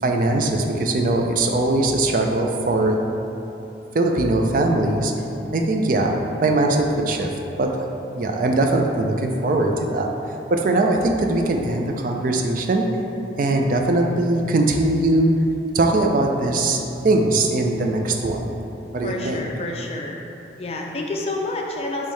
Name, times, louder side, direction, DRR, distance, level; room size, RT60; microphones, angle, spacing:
voice 1, 0.0-3.0 3.9-5.1 5.5-6.1 6.4-7.3 7.6-7.7 8.2-10.1 10.5-12.9 13.4-15.3 15.7-18.5 18.9-19.4, right 2 dB, 50° right, 2 dB, 0.4 m, -20 dB
voice 2, 19.0-20.2 20.6-22.1, left 2 dB, 35° left, 0 dB, 0.4 m, -29 dB
5.4 x 3.1 x 3.1 m, 2.9 s
head